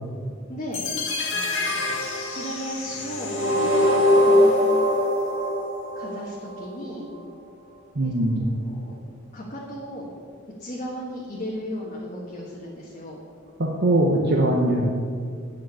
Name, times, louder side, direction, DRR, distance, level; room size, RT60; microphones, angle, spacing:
voice 1, 0.5-0.9 1.3-1.8 2.3-4.7 5.9-7.1 8.0-8.1 8.4-9.0 9.3-10.1 10.6-13.2, equal, 35° left, -4 dB, 1.6 m, -35 dB
sound 1, 0.7-6.7, left 1 dB, 65° left, 2.0 m, -23 dB
voice 2, 7.9-8.4 13.6-14.8, right 1 dB, 55° right, -2 dB, 1.1 m, -21 dB
10.0 x 6.3 x 8.4 m, 2.2 s
head